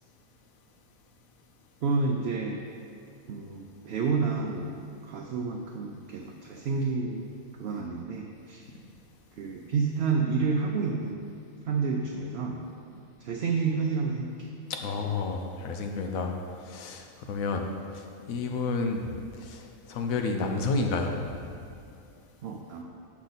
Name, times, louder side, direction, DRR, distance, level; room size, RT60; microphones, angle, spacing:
voice 1, 1.8-2.7 3.3-7.3 7.6-8.6 9.4-11.2 11.7-12.6 13.2-14.6 22.4-22.8, right 4 dB, 65° right, 1 dB, 0.7 m, -29 dB
voice 2, 14.7-16.3 16.6-17.7 17.9-19.1 19.4-21.3, left 3 dB, 75° left, 3 dB, 1.1 m, -30 dB
6.6 x 5.9 x 4.0 m, 2.5 s
omnidirectional pair, 1.5 m